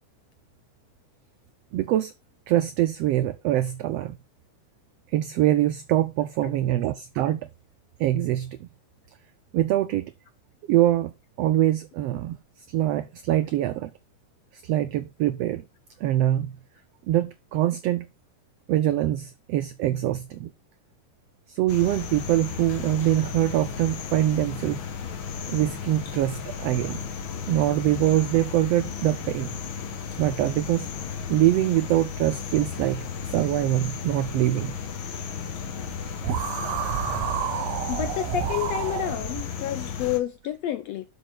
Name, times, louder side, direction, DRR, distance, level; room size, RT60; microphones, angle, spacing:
voice 1, 1.7-2.1 2.5-4.2 5.1-7.4 8.0-8.7 9.5-10.1 10.7-11.1 11.4-12.4 12.7-13.9 14.5-15.6 16.0-16.5 17.1-18.1 18.7-20.5 21.5-24.8 25.5-27.0 27.5-29.5 30.2-30.9 31.3-34.8, right 13 dB, 85° right, 1.4 m, -24 dB
sound 1, 21.7-40.2, left 6 dB, 55° left, 1.5 m, -34 dB
sound 2, 36.2-39.4, right 9 dB, 65° right, 1.9 m, -29 dB
voice 2, 37.9-41.0, left 13 dB, 80° left, 1.5 m, -29 dB
12.0 x 5.1 x 4.4 m
omnidirectional pair, 3.6 m